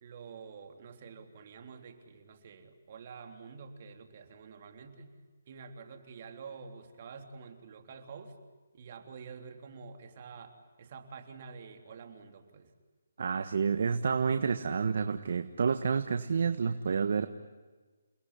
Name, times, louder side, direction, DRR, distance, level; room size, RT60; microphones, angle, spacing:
voice 1, 0.0-5.2 5.5-8.4 8.7-12.7, right 5 dB, 40° right, 5 dB, 3.5 m, -48 dB
voice 2, 13.2-17.3, right 5 dB, 60° right, 9 dB, 1.4 m, -29 dB
29.5 x 20.0 x 9.9 m, 1.3 s
hypercardioid pair, 165°, 0 cm